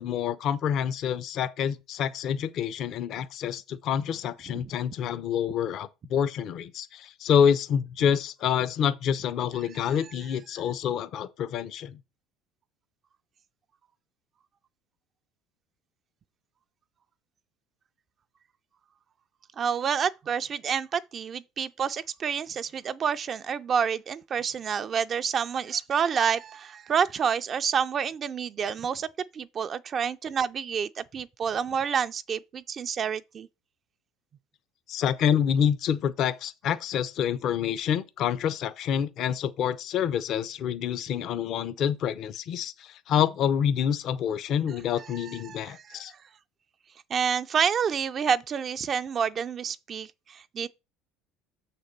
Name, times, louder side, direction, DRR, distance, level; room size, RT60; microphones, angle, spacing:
voice 1, 0.0-12.0 34.9-46.1, left 8 dB, 55° left, 0.6 m, -27 dB
voice 2, 19.6-29.1 29.3-33.5 45.2-46.0 47.1-50.7, right 7 dB, 35° right, 0.4 m, -28 dB
6.4 x 4.2 x 6.5 m
supercardioid pair, 110°, 0 cm